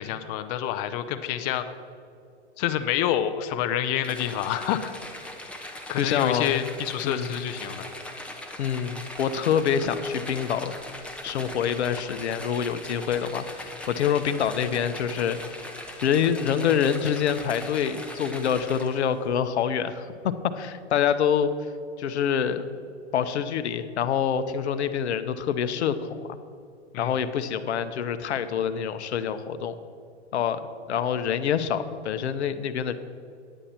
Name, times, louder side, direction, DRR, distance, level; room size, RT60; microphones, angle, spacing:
voice 1, 0.0-1.6 2.6-4.9 5.9-7.9 26.9-27.1, left 11 dB, 35° left, 10 dB, 0.6 m, -28 dB
sound 1, 4.0-19.1, left 1 dB, 5° left, 0.9 m, -40 dB
voice 2, 6.0-6.7 7.0-7.3 8.6-10.8 11.2-15.4 16.0-21.7 22.0-22.7 23.1-26.4 27.0-29.7 30.3-32.9, left 8 dB, 75° left, 11 dB, 0.9 m, -26 dB
10.0 x 9.9 x 4.3 m, 2.4 s
hypercardioid pair, 125°, 34 cm